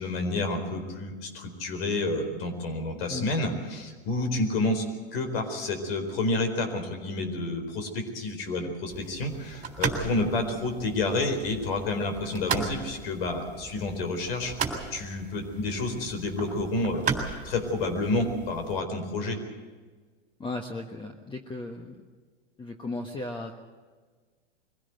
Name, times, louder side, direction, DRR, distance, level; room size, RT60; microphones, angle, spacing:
voice 1, 0.0-4.8 5.1-17.1 17.4-19.4, left 2 dB, 65° left, 7 dB, 4.5 m, -29 dB
sound 1, 8.9-18.8, right 6 dB, 25° right, 3.4 m, -36 dB
voice 2, 20.4-22.0 22.6-23.6, left 2 dB, 15° left, 4 dB, 1.4 m, -36 dB
23.0 x 16.5 x 8.0 m, 1.4 s
hypercardioid pair, 105°, 32 cm